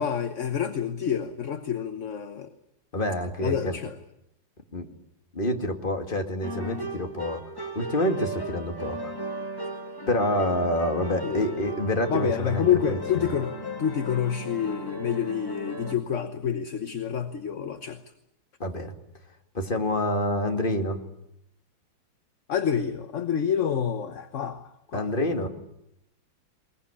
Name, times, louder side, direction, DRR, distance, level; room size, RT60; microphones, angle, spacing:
voice 1, 0.0-2.5 3.4-4.0 11.2-11.6 12.1-18.0 22.5-25.1, left 8 dB, 45° left, 10 dB, 1.2 m, -28 dB
voice 2, 2.9-3.8 4.7-4.9 5.3-9.1 10.1-13.3 18.6-18.9 19.5-21.0 24.9-25.5, left 1 dB, 25° left, 5 dB, 2.3 m, -27 dB
sound 1, 6.4-15.9, right 1 dB, 10° left, 2.0 m, -36 dB
21.5 x 20.5 x 9.8 m, 0.80 s
omnidirectional pair, 2.1 m